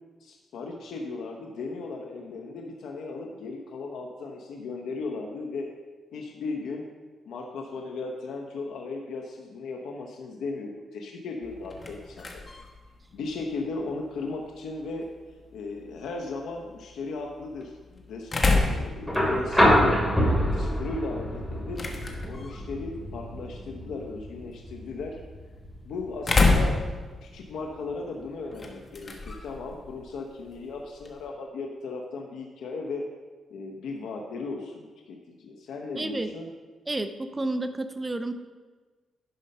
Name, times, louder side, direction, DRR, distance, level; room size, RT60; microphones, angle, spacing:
voice 1, 0.2-5.7 6.1-6.9 7.3-12.4 13.1-15.1 15.5-18.3 18.6-20.0 20.5-21.8 22.3-25.2 25.8-26.8 27.2-33.0 33.5-36.5, left 3 dB, 85° left, 2 dB, 0.9 m, -36 dB
sound 1, 11.4-31.3, left 3 dB, 30° left, 1.3 m, -32 dB
sound 2, 19.1-27.1 28.5-28.6, equal, 5° left, 2.7 m, -27 dB
voice 2, 35.9-36.3 36.9-38.3, right 2 dB, 20° right, 9 dB, 0.6 m, -30 dB
10.5 x 5.3 x 5.5 m, 1.3 s
cardioid pair, 105°, 0 cm